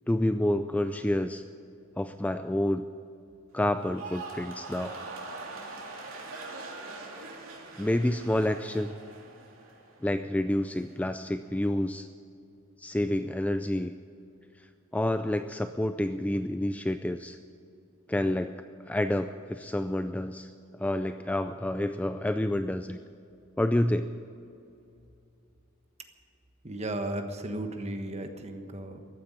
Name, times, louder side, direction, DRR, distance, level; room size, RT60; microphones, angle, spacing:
voice 1, 0.1-1.4 2.0-2.8 3.5-5.0 7.8-8.9 10.0-12.1 12.8-13.9 14.9-17.4 18.1-18.5 18.9-20.5 20.8-23.0 23.6-24.1, left 1 dB, 5° left, 9 dB, 0.3 m, -28 dB
sound 1, 3.8-10.1 10.4-10.9, right 3 dB, 80° right, 3.0 m, -43 dB
voice 2, 26.6-29.0, right 1 dB, 30° right, 6 dB, 1.3 m, -35 dB
14.5 x 9.5 x 9.7 m, 2.5 s
head